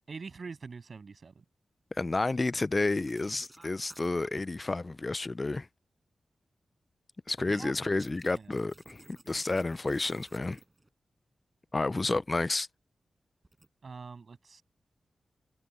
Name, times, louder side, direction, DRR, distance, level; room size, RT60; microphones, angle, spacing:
voice 1, 0.1-1.4 7.5-7.7 8.3-8.6 13.8-14.6, right 4 dB, 60° right, 7.7 m, -44 dB
voice 2, 2.0-5.7 7.3-9.0 9.3-10.6 11.7-12.7, left 3 dB, 35° left, 0.4 m, -30 dB
sound 1, 3.0-4.4 7.9-10.9 13.4-13.7, right 2 dB, 25° right, 6.2 m, -55 dB
cardioid pair, 65°, 0 cm